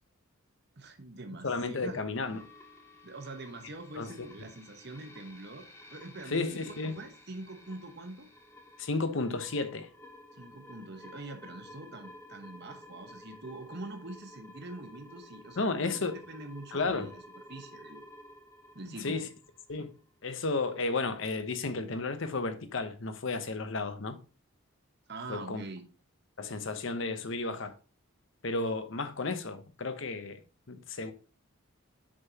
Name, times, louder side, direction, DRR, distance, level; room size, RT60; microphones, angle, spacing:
voice 1, 0.8-2.0 3.0-8.3 10.4-17.2 17.5-18.0 18.7-19.2 25.1-25.8, right 2 dB, 50° right, 1.1 m, -44 dB
voice 2, 1.4-2.4 4.0-4.1 6.3-7.0 8.8-9.9 15.6-16.2 16.7-17.1 18.9-19.3 19.7-19.9 20.2-24.2 25.3-25.6 26.4-27.7 28.4-30.4 30.7-31.1, left 3 dB, 60° left, 0.8 m, -33 dB
sound 1, 2.2-20.1, left 1 dB, 10° left, 0.7 m, -53 dB
6.3 x 5.7 x 2.9 m
head